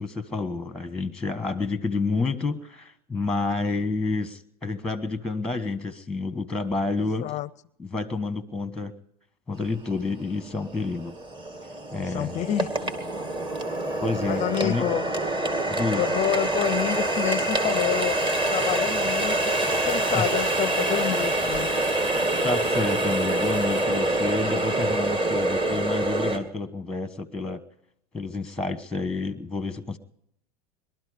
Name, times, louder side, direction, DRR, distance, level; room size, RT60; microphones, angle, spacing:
voice 1, 0.0-7.3 7.8-8.9 9.5-11.1 11.9-12.4 14.0-14.8 15.7-16.1 20.1-20.3 22.4-27.6 28.1-30.0, left 3 dB, 5° left, 1.2 m, -29 dB
Water tap faucet, 9.9-10.0 10.6-26.4, right 1 dB, 25° right, 2.5 m, -26 dB
voice 2, 12.0-12.9 14.3-15.1 15.9-21.7, left 12 dB, 35° left, 0.5 m, -29 dB
22.0 x 12.5 x 5.0 m
hypercardioid pair, 95°, 20 cm